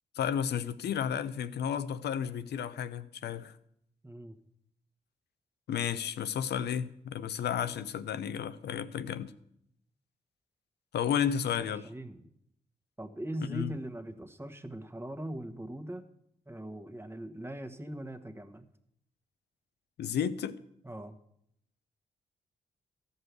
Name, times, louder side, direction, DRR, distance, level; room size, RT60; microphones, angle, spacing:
voice 1, 0.1-3.6 5.7-9.3 10.9-11.9 13.5-13.7 20.0-20.6, left 8 dB, 80° left, 0.7 m, -32 dB
voice 2, 4.0-4.4 11.6-12.3 13.0-16.0 16.5-18.7 20.8-21.1, right 1 dB, 15° right, 1.5 m, -40 dB
14.0 x 5.5 x 8.1 m
supercardioid pair, 50°, 17 cm